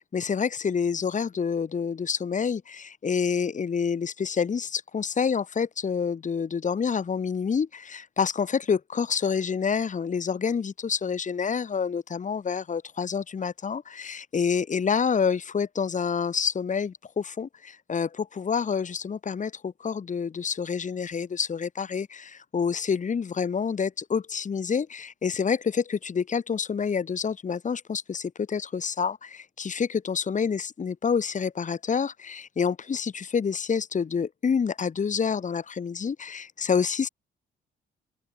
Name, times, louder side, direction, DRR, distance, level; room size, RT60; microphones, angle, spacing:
voice 1, 0.0-37.1, left 6 dB, 40° left, 2.3 m, -28 dB
cardioid pair, 90°, 20 cm